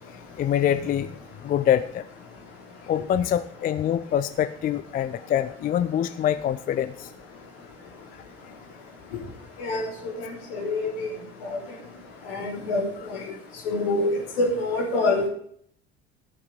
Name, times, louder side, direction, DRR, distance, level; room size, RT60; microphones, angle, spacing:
voice 1, 0.4-1.2 1.4-2.1 2.9-7.1, left 10 dB, 30° left, 13 dB, 0.5 m, -25 dB
voice 2, 10.2-11.1 11.4-11.6 12.3-12.8 13.1-13.2 13.6-14.1 14.4-15.3, left 2 dB, 65° left, 0 dB, 3.3 m, -25 dB
13.5 x 6.6 x 5.1 m, 0.63 s
figure-of-eight pair, 60°, 32 cm